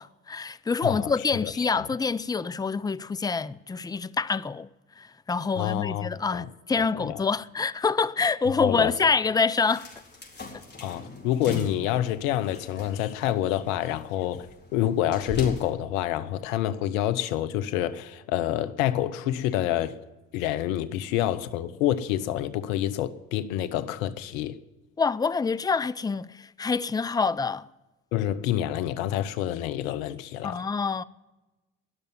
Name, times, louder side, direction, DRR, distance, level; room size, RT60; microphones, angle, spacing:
voice 1, 0.0-4.7 5.0-9.9 25.0-27.7 30.4-31.0, left 5 dB, 10° left, 0.4 m, -26 dB
voice 2, 5.5-6.5 6.8-7.2 8.5-8.9 10.8-14.5 14.7-19.9 20.3-24.6 28.1-30.6, left 12 dB, 85° left, 0.9 m, -27 dB
sound 1, 9.7-15.7, left 2 dB, 25° left, 4.3 m, -40 dB
20.5 x 6.8 x 9.4 m
hypercardioid pair, 55°, 40 cm